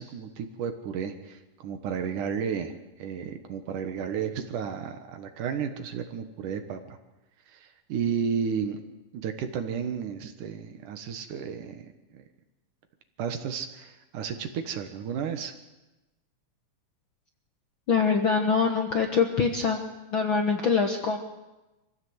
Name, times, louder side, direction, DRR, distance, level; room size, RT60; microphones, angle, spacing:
voice 1, 0.0-2.7 3.0-7.0 7.5-8.8 9.1-11.9 12.1-12.2 13.2-15.5, right 7 dB, 70° right, 8 dB, 2.9 m, -33 dB
voice 2, 17.9-19.8 20.1-21.2, left 5 dB, 55° left, 4 dB, 1.4 m, -24 dB
24.0 x 15.5 x 8.1 m, 1.0 s
omnidirectional pair, 3.9 m